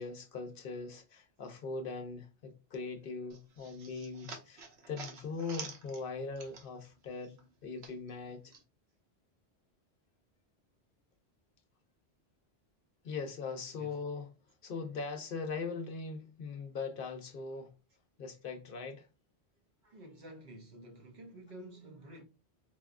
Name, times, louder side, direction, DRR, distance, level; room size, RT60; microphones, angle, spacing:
voice 1, 0.0-8.5 13.0-14.3 14.6-17.7 18.2-19.1, left 4 dB, 60° left, 0.7 m, -40 dB
sound 1, 3.3-6.9 7.2-8.6, right 5 dB, 85° right, 1.0 m, -49 dB
voice 2, 13.7-14.0 19.8-22.2, right 1 dB, 55° right, 0.7 m, -51 dB
4.6 x 2.1 x 2.4 m
omnidirectional pair, 1.1 m